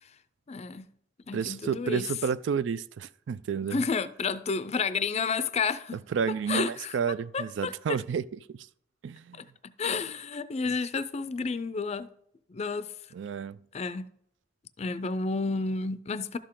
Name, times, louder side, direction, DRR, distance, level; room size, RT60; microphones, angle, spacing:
voice 1, 0.5-0.9 1.3-2.1 3.7-6.0 6.5-7.0 7.3-7.7 9.3-12.1 12.5-12.9 13.7-14.1 14.8-16.4, left 4 dB, 35° left, 0.4 m, -31 dB
voice 2, 1.3-3.8 6.1-8.2 9.0-9.4 13.1-13.6, right 6 dB, 80° right, 0.4 m, -30 dB
12.0 x 6.6 x 3.8 m
head